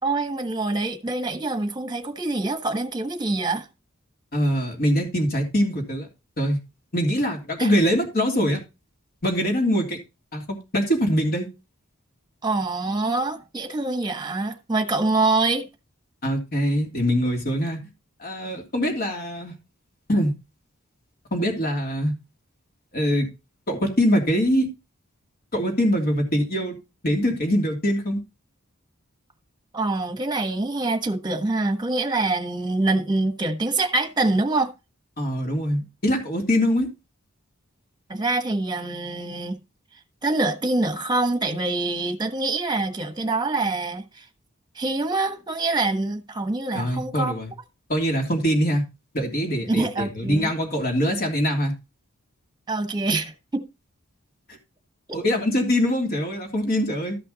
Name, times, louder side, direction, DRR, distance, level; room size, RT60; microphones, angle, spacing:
voice 1, 0.0-3.7 7.6-7.7 12.4-15.7 29.7-34.7 38.1-39.6 40.2-44.2 44.8-47.3 49.6-50.5 52.7-53.6, right 2 dB, 20° right, 1.2 m, -25 dB
voice 2, 4.3-6.1 6.4-6.6 6.9-8.6 9.2-10.0 10.3-11.5 16.2-17.8 18.2-19.5 20.1-20.3 21.3-22.1 22.9-23.3 23.7-24.7 25.5-26.7 27.0-28.2 35.2-36.9 46.7-47.5 47.9-48.8 49.1-51.7 55.1-57.2, equal, 45° left, 3.1 m, -23 dB
13.5 x 5.9 x 4.0 m
head